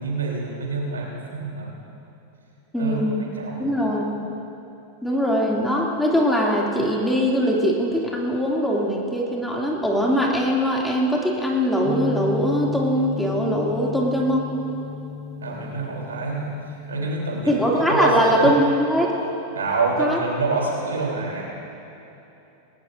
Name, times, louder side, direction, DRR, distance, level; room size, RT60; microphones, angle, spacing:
voice 1, 0.0-1.7 2.8-3.9 15.4-16.5 16.9-17.6 17.9-18.5 19.5-21.4, right 3 dB, 85° right, -2 dB, 3.5 m, -27 dB
voice 2, 2.7-3.3 3.6-4.2 5.0-14.5 17.5-19.3 20.0-20.2, equal, 5° left, -3 dB, 2.6 m, -21 dB
sound 1, 11.8-18.6, left 6 dB, 35° left, 1.0 m, -34 dB
20.0 x 19.0 x 2.6 m, 3.0 s
hypercardioid pair, 95°, 0 cm